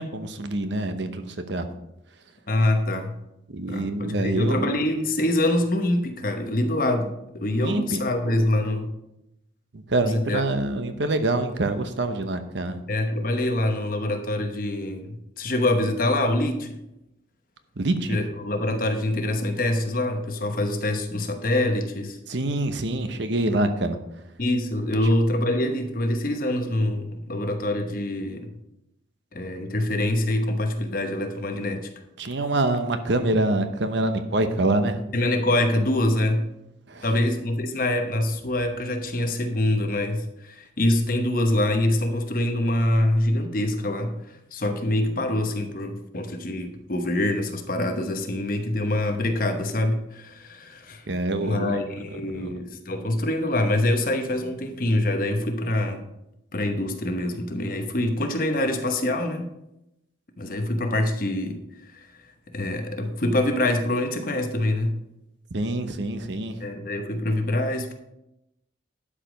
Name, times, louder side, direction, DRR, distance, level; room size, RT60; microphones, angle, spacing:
voice 1, 0.0-1.7 3.5-4.7 7.6-8.5 9.7-12.8 17.8-18.2 22.3-24.0 32.2-35.0 36.9-37.0 51.1-51.8 52.3-52.5 65.5-66.5, right 2 dB, 70° right, 8 dB, 0.9 m, -26 dB
voice 2, 2.5-3.2 3.7-8.9 10.0-10.4 12.9-16.8 18.1-22.2 24.4-28.5 29.3-31.9 35.1-36.5 37.0-44.2 44.5-51.0 51.4-56.0 56.5-59.5 60.4-61.6 61.9-62.1 62.5-65.0 66.6-67.9, left 1 dB, 45° left, 5 dB, 1.0 m, -25 dB
11.5 x 5.0 x 5.2 m, 0.87 s
head